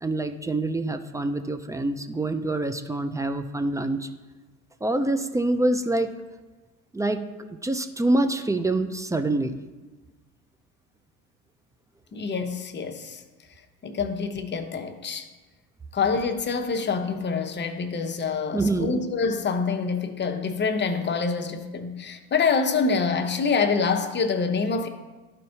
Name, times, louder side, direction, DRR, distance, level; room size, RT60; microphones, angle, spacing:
voice 1, 0.0-4.1 4.8-6.1 6.9-7.2 7.6-9.5 18.5-18.9, right 2 dB, 10° right, 0.3 m, -25 dB
voice 2, 12.1-13.2 13.8-15.3 15.9-24.9, left 5 dB, 25° left, 0.8 m, -26 dB
11.5 x 4.4 x 2.8 m
hypercardioid pair, 75°, 41 cm